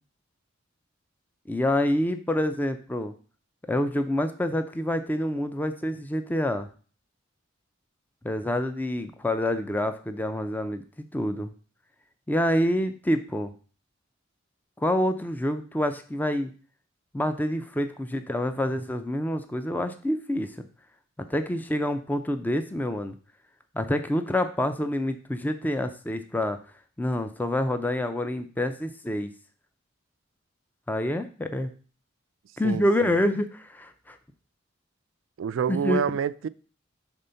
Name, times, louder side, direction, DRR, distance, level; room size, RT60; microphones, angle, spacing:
voice 1, 1.5-3.1 3.7-6.7 8.2-11.5 12.3-13.5 14.8-16.5 17.1-20.5 21.3-23.2 23.7-26.6 27.0-29.3 30.9-31.7 32.6-34.2 35.7-36.0, left 1 dB, 10° left, 0.4 m, -27 dB
voice 2, 32.6-33.1 35.4-36.5, right 7 dB, 75° right, 0.3 m, -28 dB
5.3 x 3.5 x 5.5 m
head